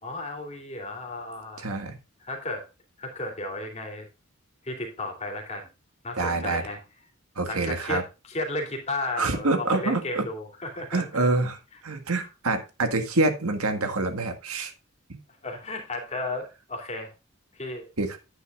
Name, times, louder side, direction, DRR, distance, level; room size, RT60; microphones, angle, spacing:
voice 1, 0.0-1.7 2.2-2.7 3.0-4.1 4.6-5.7 6.0-6.8 7.5-11.0 12.2-12.3 15.4-17.1 17.5-17.9, left 2 dB, 30° left, 3 dB, 2.6 m, -34 dB
voice 2, 1.6-2.0 6.2-6.6 7.3-8.0 9.2-10.2 10.9-14.7 18.0-18.2, right 2 dB, 85° right, 7 dB, 1.7 m, -26 dB
9.6 x 9.4 x 2.4 m, 0.28 s
head